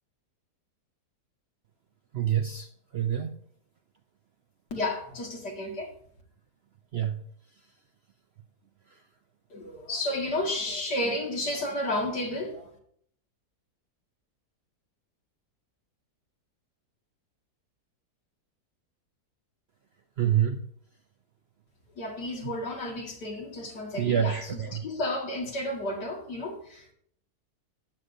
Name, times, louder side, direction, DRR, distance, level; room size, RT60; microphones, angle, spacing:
voice 1, 2.1-2.7 2.9-3.3 6.9-7.2 20.2-20.6 24.0-24.8, right 9 dB, 65° right, 0.6 m, -26 dB
voice 2, 4.7-5.9 9.5-12.7 22.0-26.9, left 1 dB, 85° left, 2.6 m, -32 dB
13.0 x 9.3 x 2.7 m
omnidirectional pair, 1.7 m